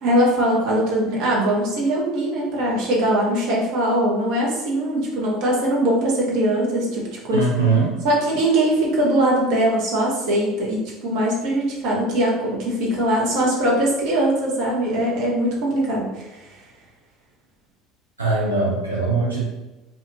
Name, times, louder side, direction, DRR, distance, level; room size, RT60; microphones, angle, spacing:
voice 1, 0.0-7.5 8.0-16.2, right 1 dB, 55° right, -3 dB, 0.8 m, -21 dB
voice 2, 7.3-7.9 18.2-19.4, right 3 dB, 85° right, -6 dB, 0.4 m, -21 dB
2.4 x 2.4 x 2.9 m, 1.1 s
figure-of-eight pair, 65°, 0 cm